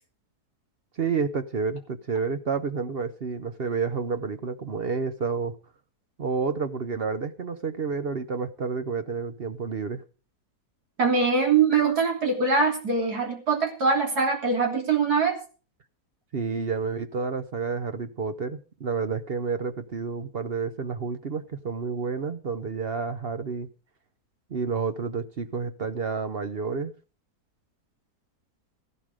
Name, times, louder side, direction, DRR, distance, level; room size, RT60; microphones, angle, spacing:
voice 1, 1.0-5.5 6.2-10.0 16.3-23.7 24.5-26.9, right 5 dB, 45° right, 10 dB, 0.9 m, -30 dB
voice 2, 11.0-15.4, right 4 dB, 80° right, 2 dB, 3.8 m, -23 dB
15.0 x 11.5 x 4.9 m, 0.37 s
omnidirectional pair, 1.6 m